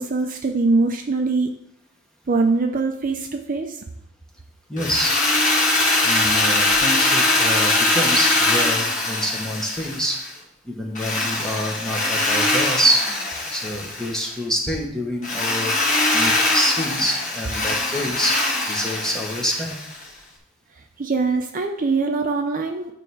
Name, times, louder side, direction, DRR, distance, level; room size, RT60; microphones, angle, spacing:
voice 1, 0.0-1.5 2.3-3.8 20.8-22.9, right 3 dB, 40° right, 4 dB, 0.6 m, -22 dB
voice 2, 4.7-5.2 6.0-10.2 10.6-15.8 16.1-18.4 18.7-19.7, equal, 5° left, -1 dB, 1.4 m, -26 dB
Drill, 4.8-10.3 11.0-14.3 15.2-20.0, left 2 dB, 40° left, 1.6 m, -22 dB
10.0 x 3.5 x 6.3 m, 0.74 s
head